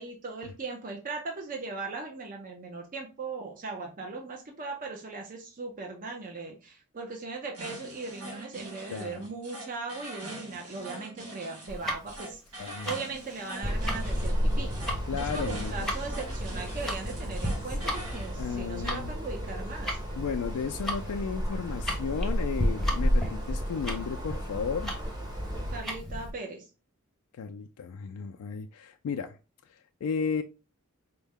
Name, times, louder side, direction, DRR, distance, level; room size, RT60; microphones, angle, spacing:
voice 1, 0.0-14.7 15.1-20.0 25.7-26.7, right 3 dB, 40° right, 1 dB, 0.6 m, -39 dB
sound 1, 7.5-18.4, right 1 dB, 80° right, 1.8 m, -44 dB
voice 2, 8.9-9.2 12.6-12.9 15.1-15.7 18.4-19.2 20.1-24.9 27.4-29.4 30.0-30.4, left 6 dB, 80° left, 6 dB, 0.3 m, -34 dB
Tick-tock, 11.7-26.3, equal, ahead, 0.8 m, -36 dB
sound 2, 13.6-25.8, equal, 20° right, 0.9 m, -32 dB
4.4 x 2.1 x 3.5 m, 0.31 s
head